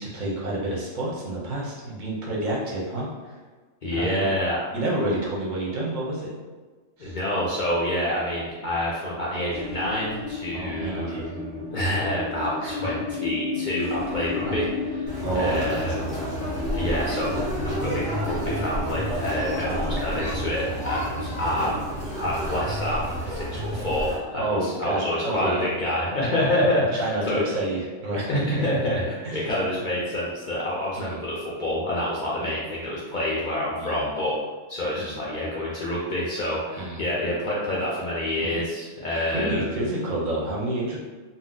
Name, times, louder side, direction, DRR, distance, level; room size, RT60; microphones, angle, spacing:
voice 1, 0.0-3.4 3.9-4.3 4.7-6.3 7.0-7.2 10.5-11.4 12.6-12.9 14.4-14.6 15.2-16.1 16.9-17.0 19.6-20.3 21.6-21.7 24.4-25.7 27.0-28.6 29.2-29.4 31.0-31.2 32.4-32.5 33.8-34.2 35.0-35.2 36.8-37.0 38.4-38.6 39.3-41.0, right 1 dB, 45° right, -4 dB, 0.7 m, -29 dB
voice 2, 3.8-4.6 7.0-14.7 14.9-16.2 16.7-21.9 22.2-27.4 28.3-34.4 34.7-39.9, left 1 dB, 55° left, -6 dB, 0.5 m, -27 dB
sound 1, 9.5-24.2, left 4 dB, 75° right, 1.0 m, -35 dB
Conversation, 15.1-24.1, right 1 dB, 5° left, 0.7 m, -30 dB
2.7 x 2.0 x 3.8 m, 1.4 s
omnidirectional pair, 1.4 m